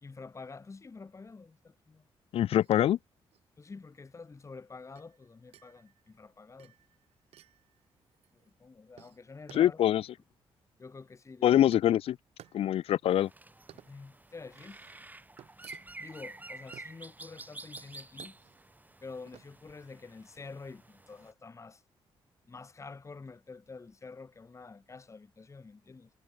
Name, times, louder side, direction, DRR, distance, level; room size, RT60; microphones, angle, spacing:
voice 1, 0.0-2.0 3.6-6.7 8.4-9.8 10.8-11.6 13.8-14.8 16.0-18.4 19.0-21.8 22.5-26.1, left 4 dB, 30° left, 1.4 m, -48 dB
voice 2, 2.3-3.0 9.5-10.0 11.4-12.2 12.5-13.3, left 11 dB, 70° left, 0.4 m, -24 dB
sound 1, 2.5-21.3, right 11 dB, 85° right, 5.0 m, -59 dB
sound 2, 13.1-21.3, right 2 dB, 15° right, 4.6 m, -50 dB
cardioid pair, 85°, 10 cm